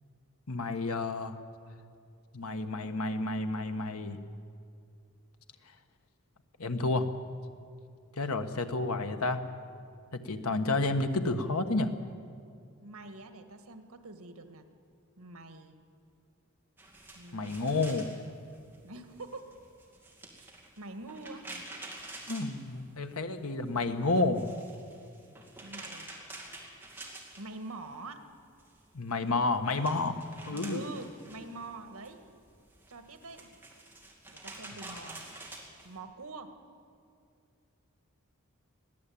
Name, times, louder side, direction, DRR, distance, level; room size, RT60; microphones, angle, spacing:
voice 1, 0.5-1.4 2.3-4.2 6.6-7.1 8.2-9.4 10.1-11.9 17.3-18.0 22.3-24.5 28.9-30.2 30.5-30.8, left 3 dB, 85° left, 7 dB, 1.4 m, -30 dB
voice 2, 12.8-14.7 15.2-15.8 17.2-17.5 18.8-19.6 20.3-21.5 25.6-26.1 27.4-28.3 30.5-32.2 32.9-33.5 34.3-35.2 35.8-36.6, right 2 dB, 85° right, 7 dB, 1.8 m, -45 dB
sound 1, 16.8-23.3 23.6-28.0 28.3-35.9, right 2 dB, 10° right, 2.5 m, -48 dB
21.0 x 15.5 x 8.6 m, 2.5 s
head